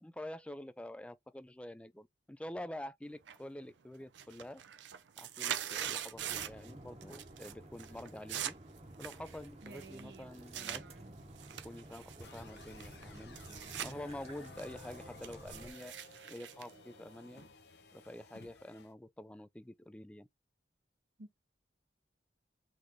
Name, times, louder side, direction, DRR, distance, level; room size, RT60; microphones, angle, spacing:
voice 1, 0.0-4.6 5.2-8.6 9.0-10.8 11.6-13.4 13.8-15.9 16.3-17.4 17.9-20.3, left 1 dB, 5° left, 0.3 m, -47 dB
sound 1, 3.3-3.7 4.0-6.7 7.0-7.5 7.8-10.8 11.4-13.9 14.3-17.4, right 10 dB, 90° right, 0.6 m, -43 dB
sound 2, 6.1-15.7, right 1 dB, 35° right, 1.0 m, -53 dB
voice 2, 9.6-10.3 10.6-11.2 21.2-21.4, right 3 dB, 70° right, 0.9 m, -53 dB
sound 3, 12.2-18.9, left 4 dB, 65° left, 0.7 m, -56 dB
4.0 x 3.3 x 3.0 m
head